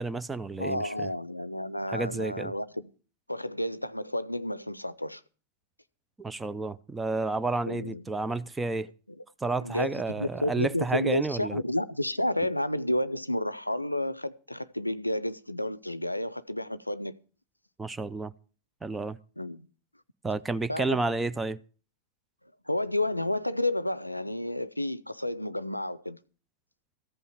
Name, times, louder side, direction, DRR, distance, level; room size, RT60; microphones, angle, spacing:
voice 1, 0.0-0.9 1.9-2.5 6.2-8.9 9.4-11.6 17.8-18.3 18.8-19.2 20.2-21.6, right 3 dB, 10° right, 0.5 m, -31 dB
voice 2, 0.6-2.9 3.3-5.2 7.7-8.0 9.1-9.2 9.6-17.2 19.4-19.7 20.7-21.0 22.7-26.2, left 1 dB, 85° left, 0.5 m, -31 dB
14.5 x 5.5 x 8.7 m
figure-of-eight pair, 90°, 0 cm